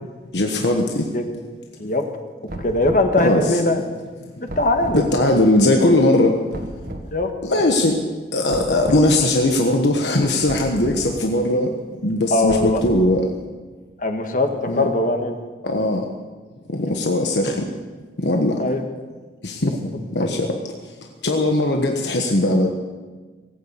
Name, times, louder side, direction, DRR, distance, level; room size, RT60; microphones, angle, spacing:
voice 1, 0.3-1.1 3.2-3.6 4.9-6.4 7.4-8.0 8.3-11.7 12.0-13.3 14.6-14.9 15.6-16.0 16.7-17.7 18.2-18.6 19.4-19.8 20.1-20.6 20.8-20.9 21.2-22.7, left 1 dB, 80° left, 2 dB, 1.3 m, -19 dB
sound 1, 2.5-3.1 4.5-5.1 6.5-7.1 8.5-9.1 10.5-11.0 12.5-13.2, right 1 dB, 55° right, 1.9 m, -33 dB
voice 2, 2.6-3.8 4.4-5.0 7.1-7.3 12.3-12.8 14.0-15.4 18.6-18.8, left 2 dB, 50° left, 5 dB, 1.6 m, -20 dB
19.0 x 8.8 x 8.3 m, 1.4 s
head